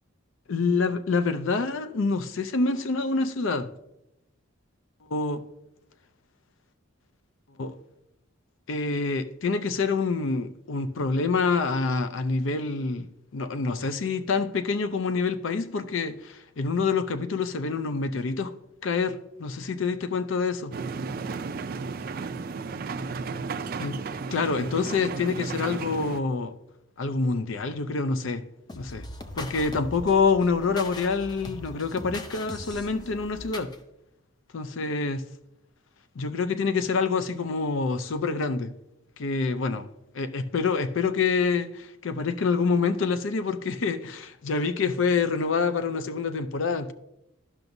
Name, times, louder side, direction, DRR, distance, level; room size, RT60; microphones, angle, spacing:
voice 1, 0.5-3.7 5.1-5.4 7.6-7.7 8.7-18.5 18.8-20.7 23.8-24.0 24.3-26.5 27.0-28.5 28.7-29.0 29.4-33.7 34.5-35.2 36.2-38.7 39.2-39.9 40.1-46.9, left 4 dB, 70° left, 0.5 m, -26 dB
sound 1, 20.7-26.2, right 4 dB, 45° right, 0.4 m, -34 dB
sound 2, 28.7-33.8, left 1 dB, 20° left, 0.5 m, -40 dB
12.0 x 5.8 x 2.6 m
head